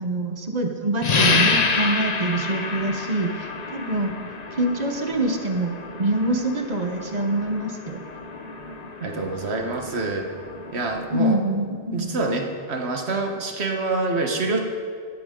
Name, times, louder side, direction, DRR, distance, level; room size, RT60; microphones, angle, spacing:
voice 1, 0.0-4.3 4.6-5.7 6.0-8.0 11.1-12.1, right 2 dB, 35° right, 4 dB, 1.2 m, -25 dB
sound 1, 1.0-11.3, left 4 dB, 40° left, 0.9 m, -28 dB
voice 2, 9.0-10.3 10.7-11.4 11.9-14.6, right 3 dB, 65° right, 3 dB, 1.5 m, -26 dB
15.5 x 12.0 x 3.8 m, 2.1 s
omnidirectional pair, 1.2 m